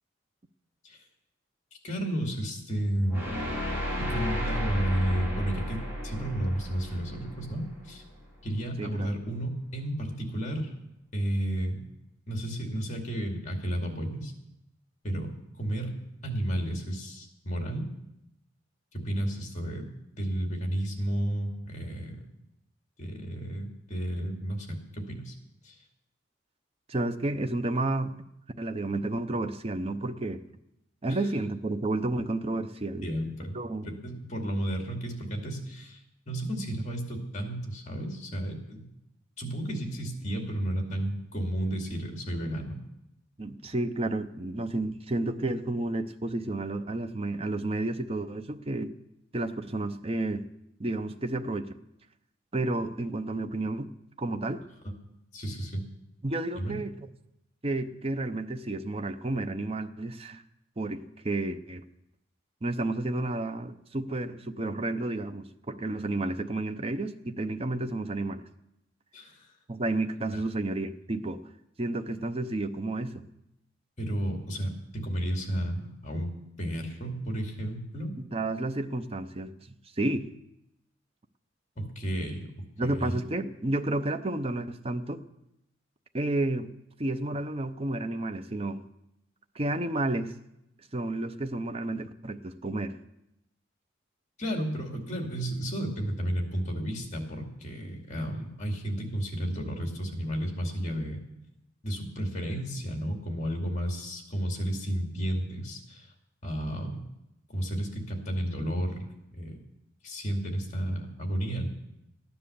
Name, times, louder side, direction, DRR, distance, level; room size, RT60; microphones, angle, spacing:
voice 1, 1.8-3.2 4.0-8.0 8.4-10.7 11.1-11.8 12.3-14.3 15.0-15.9 16.2-17.9 18.9-19.9 20.2-22.2 23.0-25.3 25.6-25.8 31.1-31.2 33.0-33.6 33.8-38.8 39.4-42.8 55.3-55.8 56.5-56.7 69.1-69.5 70.3-70.4 74.0-76.3 76.6-78.1 81.8-82.5 82.8-83.2 94.4-101.2 101.8-106.1 106.4-107.0 107.5-109.1 109.3-109.6 110.0-111.7, right 1 dB, 40° left, 2 dB, 2.4 m, -32 dB
sound 1, 3.1-8.2, equal, 10° right, 4.3 m, -33 dB
voice 2, 26.9-28.2 28.6-30.4 31.0-33.1 33.5-33.9 43.4-48.9 49.3-50.5 50.8-51.8 52.5-53.9 54.2-54.6 56.2-56.9 57.6-60.4 60.8-61.8 62.6-68.4 69.7-71.4 71.8-73.2 78.3-80.3 82.8-85.2 86.1-86.7 87.0-88.8 89.5-90.3 90.9-93.0, right 2 dB, 30° right, 8 dB, 0.7 m, -31 dB
14.5 x 10.0 x 6.9 m, 0.87 s
head